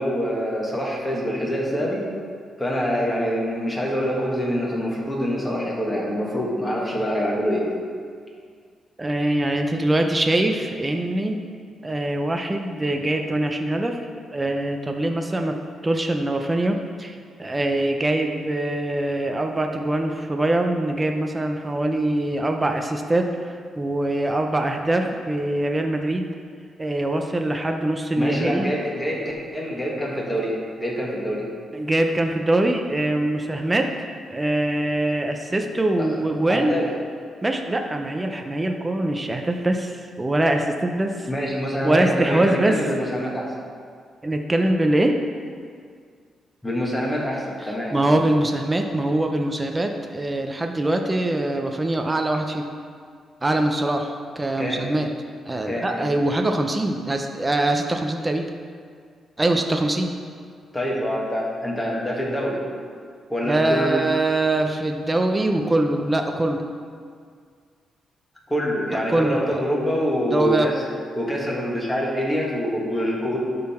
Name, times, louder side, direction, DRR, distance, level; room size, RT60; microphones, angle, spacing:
voice 1, 0.0-2.0 2.6-7.6 28.2-31.4 36.0-36.1 36.5-36.9 41.3-43.5 46.6-47.9 54.6-54.9 55.7-56.1 60.7-62.6 63.3-63.9 68.5-70.8 71.1-73.4, equal, 10° left, -3 dB, 1.6 m, -25 dB
voice 2, 9.0-11.4 11.8-14.0 14.3-15.6 15.8-26.3 26.8-28.7 31.7-36.8 37.4-41.3 41.8-42.8 44.2-45.1 47.6-52.6 53.4-55.1 55.5-58.4 59.4-60.1 63.5-66.6 68.9-69.6 70.3-70.7, right 1 dB, 20° right, 4 dB, 0.5 m, -23 dB
11.5 x 3.9 x 4.3 m, 2.1 s
cardioid pair, 105°, 0 cm